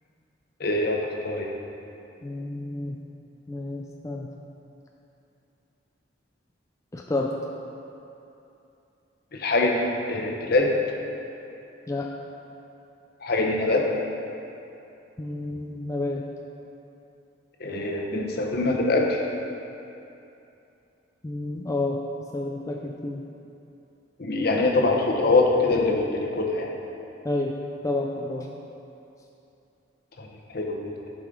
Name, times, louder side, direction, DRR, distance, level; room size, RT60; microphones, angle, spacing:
voice 1, 0.6-1.0 1.2-1.5 9.3-10.7 13.2-13.9 17.6-19.2 24.2-26.7 30.2-30.3 30.5-30.9, left 2 dB, 55° left, 0 dB, 0.9 m, -23 dB
voice 2, 2.2-3.0 3.5-4.3 6.9-7.3 11.9-12.1 15.2-16.2 21.2-22.0 22.3-23.2 27.2-27.6 27.8-28.5, left 2 dB, 15° left, 0 dB, 0.4 m, -30 dB
10.5 x 4.9 x 3.8 m, 2.8 s
head